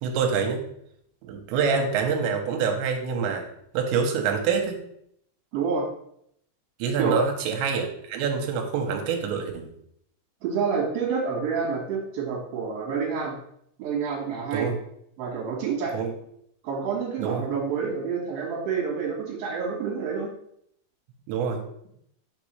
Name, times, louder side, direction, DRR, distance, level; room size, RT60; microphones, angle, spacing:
voice 1, 0.0-0.6 1.3-3.5 3.7-4.8 6.8-9.7 14.5-14.8 15.9-16.1 17.2-17.4 21.3-21.6, right 6 dB, 80° right, 3 dB, 3.0 m, -26 dB
voice 2, 5.5-5.9 7.0-7.2 10.4-13.3 13.8-14.7 15.2-15.9 16.6-20.3, right 5 dB, 60° right, -2 dB, 3.1 m, -28 dB
6.7 x 5.3 x 3.1 m, 0.71 s
omnidirectional pair, 5.4 m